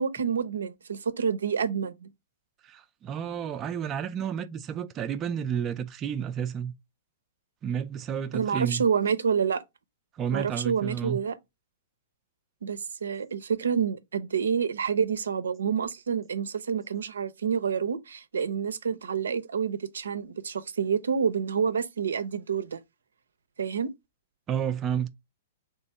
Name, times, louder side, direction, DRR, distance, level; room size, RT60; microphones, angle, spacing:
voice 1, 0.0-2.1 8.3-9.6 10.3-11.4 12.6-22.8 23.6-23.9, right 7 dB, 85° right, 0.6 m, -28 dB
voice 2, 2.6-6.7 7.6-8.8 10.1-11.2 24.5-25.1, right 8 dB, 25° right, 0.4 m, -31 dB
3.4 x 3.1 x 4.2 m
hypercardioid pair, 125°, 0 cm